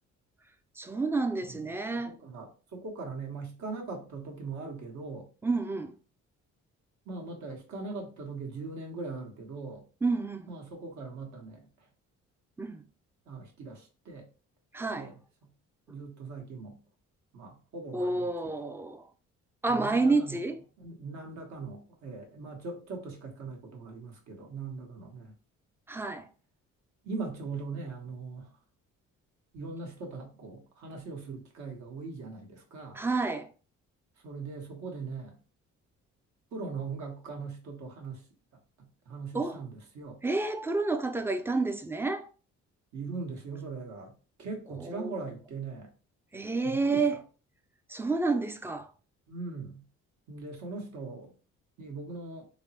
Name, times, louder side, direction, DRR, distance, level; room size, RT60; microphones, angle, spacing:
voice 1, 0.8-2.1 5.4-5.9 10.0-10.5 12.6-12.8 14.7-15.1 17.9-19.0 19.6-20.6 25.9-26.3 32.9-33.5 39.3-39.6 40.2-42.3 44.8-45.1 46.3-47.2 47.9-48.9, right 3 dB, 10° right, 0.3 m, -29 dB
voice 2, 1.5-5.3 7.1-9.8 10.5-11.7 13.3-14.2 14.9-15.1 15.9-16.8 17.3-18.5 19.6-20.4 20.8-25.3 27.0-28.5 29.5-33.0 34.2-35.4 36.5-38.2 38.8-40.2 42.9-44.1 44.4-45.9 46.6-47.2 49.3-49.8 50.3-51.3 51.8-52.5, right 4 dB, 70° right, 1.1 m, -40 dB
3.4 x 2.1 x 2.7 m
cardioid pair, 90°, 30 cm